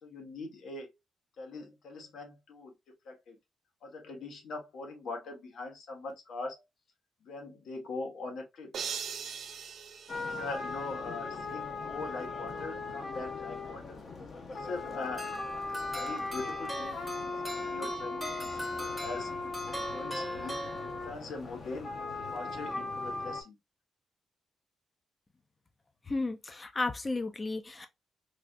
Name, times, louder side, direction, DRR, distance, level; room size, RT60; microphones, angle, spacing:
voice 1, 0.0-0.9 1.4-2.7 3.0-3.3 3.8-6.6 7.2-8.7 10.2-14.0 14.5-15.3 15.9-19.3 19.7-21.9 22.3-23.6, left 3 dB, 70° left, 1.4 m, -42 dB
sound 1, 8.7-11.1, right 7 dB, 65° right, 0.7 m, -40 dB
sound 2, 10.1-23.4, left 3 dB, 45° left, 0.8 m, -38 dB
sound 3, 15.2-21.3, equal, ahead, 0.8 m, -41 dB
voice 2, 26.1-27.9, left 3 dB, 20° left, 0.4 m, -33 dB
4.7 x 2.4 x 2.5 m
cardioid pair, 145°, 0 cm